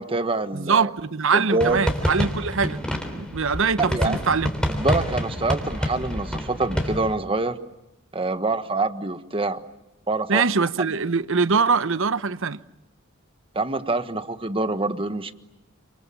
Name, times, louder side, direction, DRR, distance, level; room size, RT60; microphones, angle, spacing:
voice 1, 0.0-0.9 1.3-1.8 3.9-4.2 4.7-7.6 8.1-9.6 10.1-10.4 13.5-15.3, right 2 dB, 25° right, 1.4 m, -25 dB
voice 2, 0.5-2.8 3.2-4.5 10.3-12.6, right 5 dB, 65° right, 0.9 m, -23 dB
sound 1, 1.6-7.1, equal, 5° left, 3.6 m, -27 dB
28.5 x 27.0 x 7.3 m
head